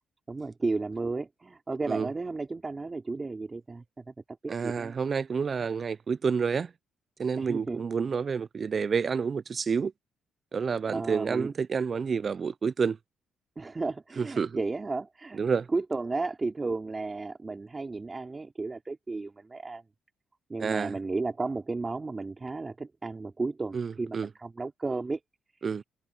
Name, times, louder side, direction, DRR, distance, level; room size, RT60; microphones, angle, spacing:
voice 1, 0.3-4.1 4.4-5.0 7.4-7.8 10.9-11.5 13.6-15.4 15.7-19.8 20.5-25.2, right 3 dB, 25° right, 4.1 m, -33 dB
voice 2, 4.5-6.7 7.2-9.9 10.5-13.0 14.2-14.6 15.4-15.7 20.6-21.0 23.7-24.3 25.6-25.8, right 6 dB, 40° right, 0.3 m, -29 dB
cardioid pair, 90°, 0 cm